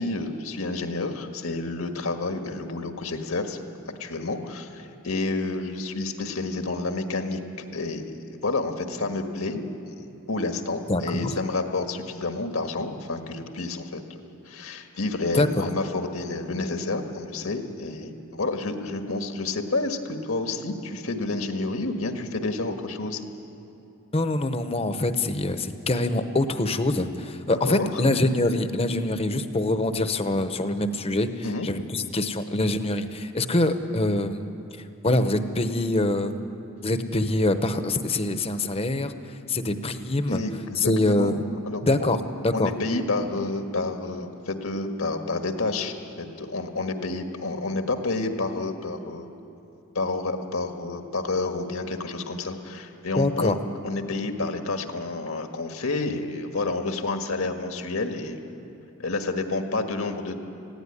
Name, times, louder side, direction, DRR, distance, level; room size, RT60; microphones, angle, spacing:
voice 1, 0.0-3.6 4.0-8.0 8.3-9.6 10.3-23.2 27.5-28.0 31.4-31.7 40.3-40.9 41.2-41.3 41.7-42.2 42.5-49.3 49.9-53.6 53.8-58.4 59.0-60.3, left 3 dB, 80° left, 5 dB, 1.7 m, -29 dB
voice 2, 10.9-11.3 15.3-15.7 24.1-31.3 31.6-34.4 35.0-36.3 36.8-39.1 39.5-40.4 40.8-41.4 41.8-42.2 42.4-42.7 53.1-53.6, left 2 dB, 30° left, 9 dB, 0.9 m, -24 dB
19.5 x 16.0 x 9.8 m, 2.9 s
head